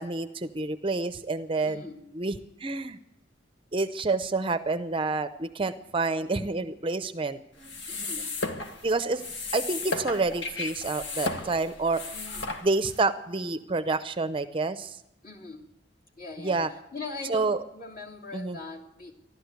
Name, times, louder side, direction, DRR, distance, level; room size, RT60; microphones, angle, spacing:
voice 1, 0.0-1.8 2.1-3.0 3.7-7.4 8.8-9.2 9.5-12.1 12.6-15.0 16.4-16.7 17.3-17.6 18.3-18.6, right 3 dB, 30° right, 11 dB, 0.6 m, -28 dB
voice 2, 1.6-2.1 7.9-8.3 12.1-12.6 15.2-15.7 16.2-19.1, left 3 dB, 50° left, -1 dB, 3.0 m, -41 dB
sound 1, 7.6-13.0, left 3 dB, 70° left, 1.8 m, -35 dB
14.5 x 12.0 x 8.2 m, 0.83 s
head